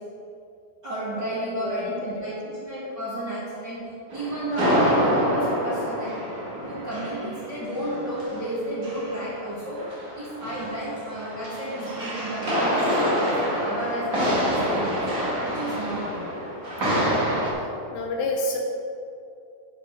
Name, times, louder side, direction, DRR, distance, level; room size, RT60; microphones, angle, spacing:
voice 1, 0.8-3.8 4.1-6.1 6.6-9.8 10.1-15.0 15.4-16.3, right 1 dB, 45° right, -10 dB, 1.4 m, -32 dB
voice 2, 1.6-1.9 2.2-2.3 16.8-17.1 17.5-18.6, left 2 dB, 75° left, 0 dB, 2.5 m, -30 dB
sound 1, 4.1-9.5 9.8-17.5, equal, 85° right, 0.7 m, -27 dB
12.0 x 4.9 x 4.6 m, 2.6 s
omnidirectional pair, 4.4 m